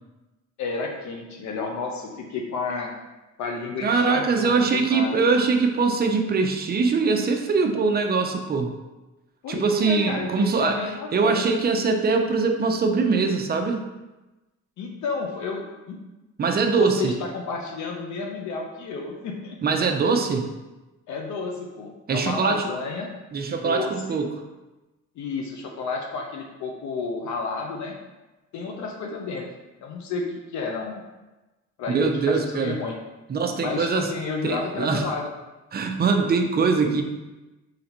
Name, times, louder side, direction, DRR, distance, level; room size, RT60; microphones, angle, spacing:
voice 1, 0.6-2.9 3.4-5.2 9.4-11.6 14.8-16.0 16.8-19.8 21.1-23.1 23.6-24.2 25.2-28.0 28.5-29.5 29.8-31.0 31.8-33.0 33.6-35.3, left 4 dB, 70° left, 1 dB, 0.6 m, -31 dB
voice 2, 3.8-8.7 9.5-10.8 11.1-13.8 16.4-17.1 19.6-20.5 22.1-22.7 23.3-24.3 31.9-32.8 33.3-34.1 34.4-35.0 35.7-37.0, right 4 dB, 30° right, 4 dB, 0.5 m, -22 dB
3.8 x 3.3 x 2.9 m, 1.1 s
cardioid pair, 90°, 30 cm